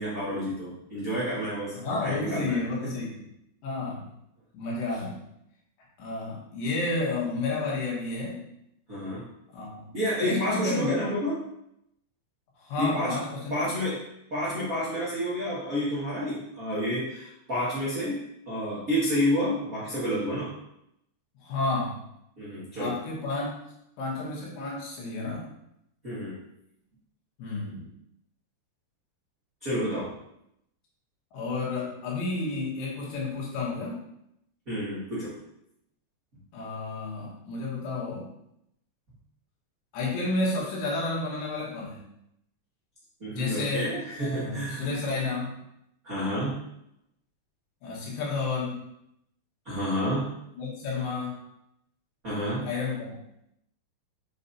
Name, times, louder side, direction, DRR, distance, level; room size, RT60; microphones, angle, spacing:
voice 1, 0.0-2.6 8.9-9.2 9.9-11.4 12.8-13.2 13.5-14.0 14.3-18.2 18.5-20.5 22.4-22.9 26.0-26.3 29.6-30.1 34.7-35.3 43.2-45.0 46.0-46.5 49.6-50.3 52.2-52.7, equal, 80° right, -10 dB, 0.7 m, -29 dB
voice 2, 1.8-3.2 3.6-4.1 4.5-5.2 6.0-8.5 9.5-9.9 10.2-11.0 12.6-13.6 21.4-22.0 22.8-23.6 24.0-25.5 27.4-27.9 31.3-34.0 36.5-38.3 39.9-42.0 43.4-43.9 44.2-45.6 47.8-48.8 50.6-51.4 52.6-53.2, left 3 dB, 90° left, -4 dB, 3.9 m, -31 dB
7.4 x 4.9 x 2.8 m, 0.78 s
omnidirectional pair, 4.9 m